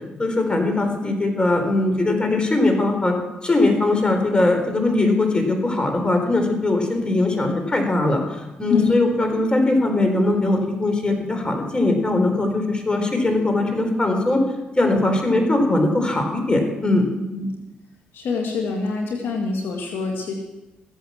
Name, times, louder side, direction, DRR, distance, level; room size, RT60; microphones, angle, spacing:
voice 1, 0.2-3.2 3.4-14.4 14.8-17.1, left 2 dB, 25° left, 4 dB, 4.3 m, -20 dB
voice 2, 18.1-20.3, left 4 dB, 70° left, 1 dB, 2.2 m, -24 dB
15.5 x 9.0 x 7.4 m, 1.0 s
supercardioid pair, 60°, 4 cm